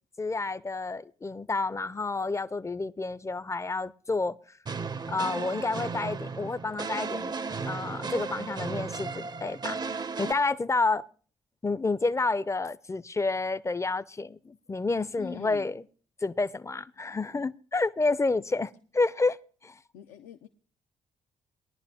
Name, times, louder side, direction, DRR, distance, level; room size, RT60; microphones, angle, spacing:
voice 1, 0.2-4.4 5.1-7.3 7.7-11.0 11.6-15.8 16.2-19.4 19.6-19.8, left 3 dB, 20° left, 0.5 m, -29 dB
sound 1, 4.7-10.3, right 4 dB, 30° right, 0.5 m, -35 dB
voice 2, 15.2-15.7 19.9-20.5, left 8 dB, 85° left, 0.6 m, -43 dB
20.0 x 11.0 x 2.8 m
hypercardioid pair, 50°, 15 cm